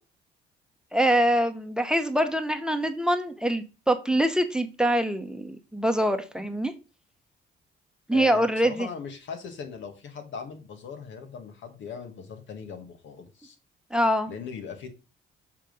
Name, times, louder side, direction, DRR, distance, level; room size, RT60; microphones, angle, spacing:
voice 1, 0.9-6.7 8.1-8.9 13.9-14.3, right 1 dB, 5° right, 1.0 m, -24 dB
voice 2, 8.1-13.5 14.3-15.0, left 6 dB, 70° left, 1.7 m, -39 dB
7.4 x 3.8 x 5.2 m
supercardioid pair, 75°, 20 cm